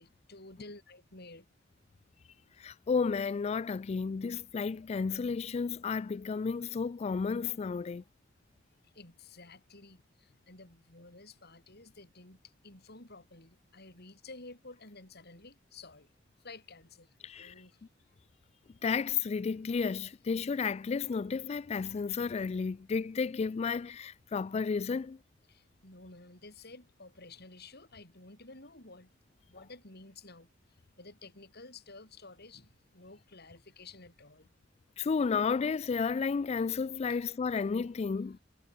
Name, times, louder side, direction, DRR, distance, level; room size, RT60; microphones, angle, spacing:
voice 1, 0.0-1.5 8.8-16.1 16.4-17.8 25.5-29.2 29.5-34.5 37.1-37.2, left 3 dB, 55° left, 7.8 m, -52 dB
voice 2, 2.6-8.0 17.2-17.5 18.8-25.2 35.0-38.4, left 5 dB, 35° left, 0.3 m, -32 dB
head